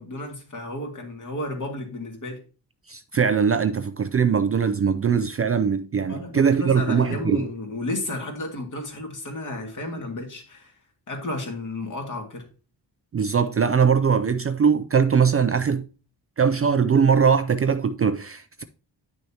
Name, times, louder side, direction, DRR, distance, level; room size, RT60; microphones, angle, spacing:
voice 1, 0.0-2.4 6.1-10.7 11.1-12.5, left 2 dB, 45° left, 2.4 m, -32 dB
voice 2, 2.9-7.4 13.1-15.9 16.4-18.6, right 6 dB, 35° right, 0.4 m, -21 dB
10.0 x 6.3 x 2.9 m
wide cardioid pair, 135°, 43 cm